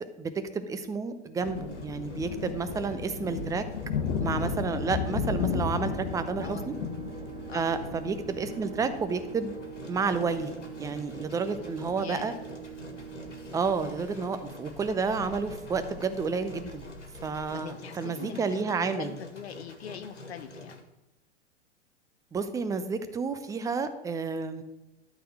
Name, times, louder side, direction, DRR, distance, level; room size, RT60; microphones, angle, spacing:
voice 1, 0.2-3.6 4.2-6.7 7.5-9.6 9.9-12.3 13.5-16.9 17.2-19.1 22.3-24.6, right 4 dB, 10° right, 11 dB, 0.5 m, -30 dB
Engine, 1.4-20.8, left 2 dB, 85° left, 1.6 m, -48 dB
sound 1, 1.4-17.5, left 5 dB, 50° left, 1.3 m, -36 dB
sound 2, 3.8-15.0, right 11 dB, 50° right, 1.8 m, -45 dB
voice 2, 6.4-6.7 7.5-7.7 12.0-12.5 17.5-20.8, left 9 dB, 65° left, 10 dB, 0.6 m, -42 dB
12.0 x 4.1 x 6.3 m, 0.97 s
figure-of-eight pair, 100°, 35 cm